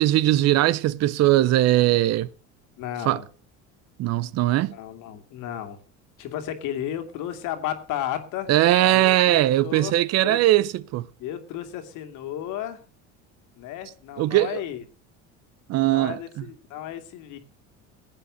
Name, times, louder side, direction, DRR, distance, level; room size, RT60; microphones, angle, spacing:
voice 1, 0.0-2.3 3.1-3.2 4.0-4.8 8.5-11.0 14.2-14.5 15.7-16.2, right 15 dB, 50° right, 0.7 m, -20 dB
voice 2, 2.8-3.3 4.7-5.8 6.2-8.5 8.8-9.9 10.2-10.4 11.2-12.8 13.5-14.8 15.9-17.4, left 11 dB, 70° left, 2.4 m, -33 dB
16.0 x 8.6 x 6.4 m
cardioid pair, 130°, 32 cm